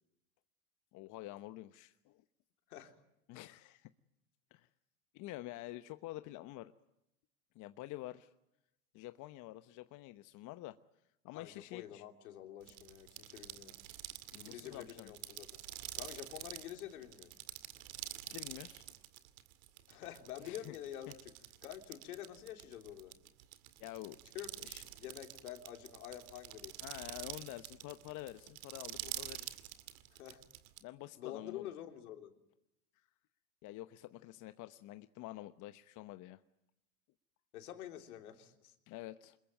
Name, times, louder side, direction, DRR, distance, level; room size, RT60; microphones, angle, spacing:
voice 1, 0.9-2.2 3.3-3.9 4.5-4.7 5.1-6.7 7.5-8.3 8.9-10.8 11.2-12.0 14.3-15.1 18.3-18.9 20.4-20.7 21.1-21.2 23.8-24.2 24.6-24.8 26.8-29.6 30.8-31.7 33.6-36.4 38.9-39.4, left 17 dB, 40° left, 11 dB, 1.0 m, -48 dB
voice 2, 11.3-13.8 14.3-15.6 16.0-17.3 19.9-21.3 21.6-23.1 24.3-24.5 25.0-26.7 30.1-30.4 31.2-32.3 37.5-38.8, left 11 dB, 75° left, 5 dB, 3.7 m, -48 dB
sound 1, 12.6-30.8, right 14 dB, 65° right, 2.3 m, -47 dB
26.5 x 22.0 x 9.2 m, 0.86 s
hypercardioid pair, 100°, 44 cm